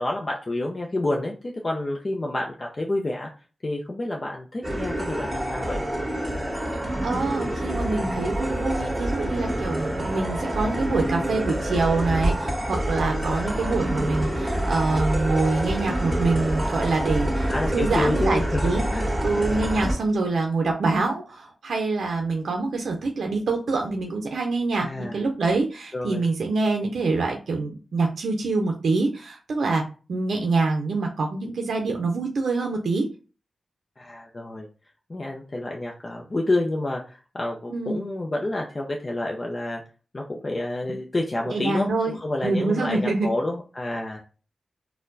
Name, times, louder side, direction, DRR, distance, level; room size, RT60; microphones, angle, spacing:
voice 1, 0.0-1.3 1.6-3.3 3.6-5.8 17.4-18.6 18.9-19.3 24.8-25.2 25.9-26.3 34.0-34.7 35.1-39.8 40.1-41.9 42.2-44.2, left 2 dB, 35° left, 0 dB, 0.5 m, -28 dB
sound 1, 4.6-19.9, right 1 dB, 15° right, 1.7 m, -27 dB
voice 2, 7.0-18.8 19.2-29.8 30.1-33.1 37.7-38.0 41.5-42.2 42.4-43.3, right 3 dB, 85° right, 2 dB, 0.5 m, -25 dB
4.3 x 2.1 x 2.6 m, 0.35 s
wide cardioid pair, 75°, 0 cm